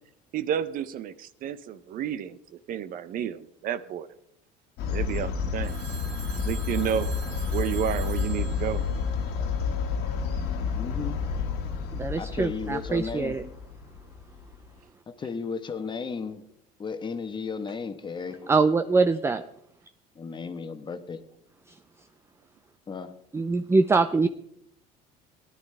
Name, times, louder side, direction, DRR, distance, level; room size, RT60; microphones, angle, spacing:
voice 1, 0.3-2.4 2.7-4.1 4.9-5.8 6.5-7.1 7.5-8.9, right 9 dB, 55° right, 14 dB, 0.6 m, -31 dB
sound 1, 4.8-14.6, left 5 dB, 70° left, 1.7 m, -30 dB
Telephone, 5.6-9.9, right 7 dB, 70° right, 1.7 m, -45 dB
voice 2, 10.7-11.2 12.2-13.4 15.1-16.4 16.8-18.5 20.1-21.2 22.9-23.1, left 5 dB, 25° left, 8 dB, 1.1 m, -34 dB
voice 3, 11.9-13.4 18.5-19.4 23.3-24.3, right 4 dB, 15° right, 9 dB, 0.5 m, -23 dB
18.0 x 11.0 x 3.3 m, 0.74 s
supercardioid pair, 100°, 17 cm